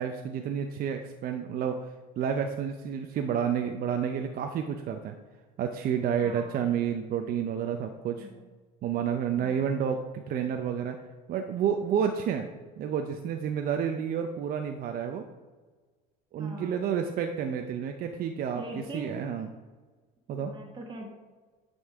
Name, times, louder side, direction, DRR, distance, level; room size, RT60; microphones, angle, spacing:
voice 1, 0.0-5.2 5.6-8.3 8.8-11.0 11.3-12.5 12.8-15.2 16.3-18.6 18.9-19.5 20.3-20.5, right 8 dB, 45° right, 5 dB, 0.7 m, -30 dB
voice 2, 6.2-6.6 8.2-8.5 9.3-9.8 16.4-16.8 18.5-19.2 20.4-21.1, right 1 dB, 25° right, 0 dB, 1.7 m, -43 dB
9.7 x 5.4 x 3.6 m, 1.4 s
supercardioid pair, 100°, 21 cm